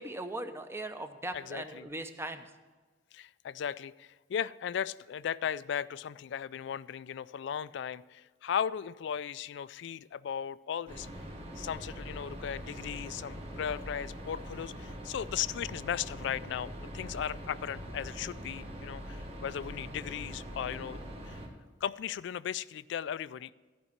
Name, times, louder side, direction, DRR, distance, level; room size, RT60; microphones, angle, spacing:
voice 1, 0.0-2.5, right 1 dB, 15° right, 8 dB, 0.7 m, -39 dB
voice 2, 1.3-1.9 3.1-11.1 11.6-21.0 21.2-21.4 21.8-23.5, left 8 dB, 65° left, 18 dB, 0.3 m, -36 dB
sound 1, 10.9-21.5, equal, 35° right, 1.5 m, -43 dB
14.0 x 5.3 x 7.3 m, 1.3 s
head